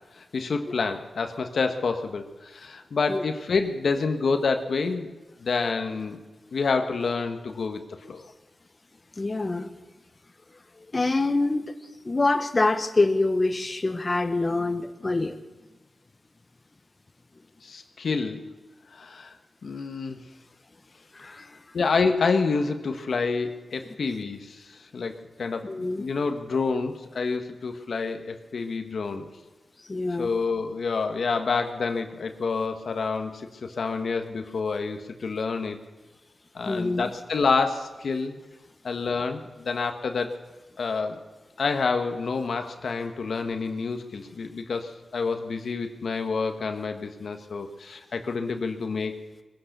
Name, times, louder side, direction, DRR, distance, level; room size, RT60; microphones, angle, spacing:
voice 1, 0.1-5.1 5.4-6.2 6.5-8.2 17.6-18.4 18.9-19.3 19.6-20.2 21.2-21.3 21.7-29.2 30.2-35.8 36.5-38.4 38.8-40.3 40.8-41.2 41.6-49.2, left 4 dB, 75° left, 6 dB, 1.3 m, -28 dB
voice 2, 9.2-9.7 10.8-11.7 12.0-15.4 21.1-21.6 25.6-26.0 29.9-30.3 36.6-37.1, left 2 dB, 40° left, 7 dB, 1.2 m, -25 dB
20.5 x 10.5 x 6.8 m, 1.2 s
cardioid pair, 50°, 0 cm